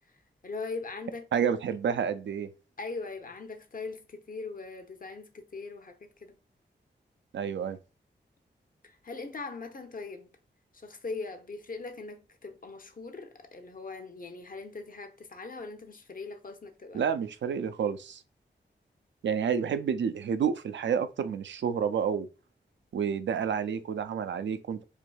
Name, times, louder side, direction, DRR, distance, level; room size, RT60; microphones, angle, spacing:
voice 1, 0.4-1.5 2.8-6.4 8.8-10.3 10.7-17.1, left 3 dB, 45° left, 0.8 m, -40 dB
voice 2, 1.3-2.5 7.3-7.8 16.9-18.2 19.2-22.3 22.9-24.8, right 7 dB, 75° right, 0.4 m, -29 dB
4.5 x 2.5 x 2.3 m
cardioid pair, 45°, 19 cm